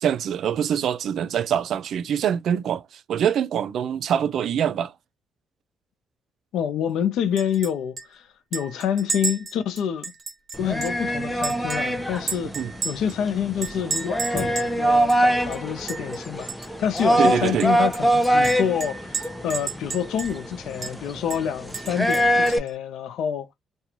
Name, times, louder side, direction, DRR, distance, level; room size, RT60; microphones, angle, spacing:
voice 1, 0.0-4.9 12.5-12.7 17.2-17.7, right 8 dB, 70° right, 0.3 m, -24 dB
voice 2, 6.5-8.2 8.5-10.1 10.6-12.5 12.8-16.5 16.8-23.5, left 8 dB, 80° left, 0.6 m, -27 dB
Chink clink, 7.4-7.7 8.0-8.1 8.5-11.0 11.4-13.2 13.6-14.7 15.1-15.2 15.5-16.2 16.5-16.7 17.0-17.1 17.6-20.5 20.8-20.9 21.3-22.7, right 5 dB, 50° right, 1.1 m, -33 dB
sound 1, 10.5-22.6, right 1 dB, ahead, 0.5 m, -24 dB
2.5 x 2.3 x 2.9 m
cardioid pair, 90°, 0 cm